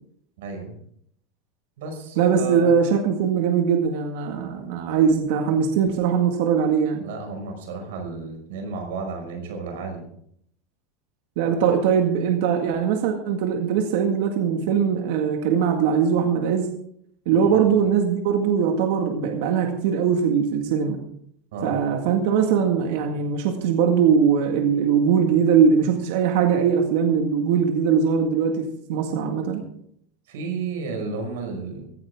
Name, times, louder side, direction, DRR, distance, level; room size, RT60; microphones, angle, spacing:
voice 1, 0.4-0.7 1.8-2.7 7.0-10.1 17.3-17.6 21.5-21.8 30.3-31.9, right 4 dB, 85° right, 3 dB, 5.8 m, -32 dB
voice 2, 2.2-7.0 11.4-16.7 17.3-21.0 21.6-29.6, right 7 dB, 70° right, 3 dB, 1.9 m, -21 dB
16.5 x 14.0 x 3.7 m, 0.66 s
supercardioid pair, 150°, 0 cm